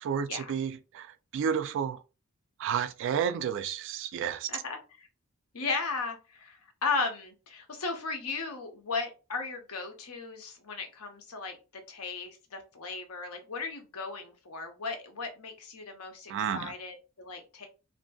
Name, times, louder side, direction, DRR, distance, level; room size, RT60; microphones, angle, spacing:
voice 1, 0.0-1.1 1.3-2.0 2.6-4.5 16.3-16.7, right 7 dB, 55° right, 0.3 m, -31 dB
voice 2, 4.5-5.1 5.5-11.6 11.9-17.7, left 4 dB, 75° left, 0.7 m, -36 dB
2.6 x 2.6 x 2.3 m
head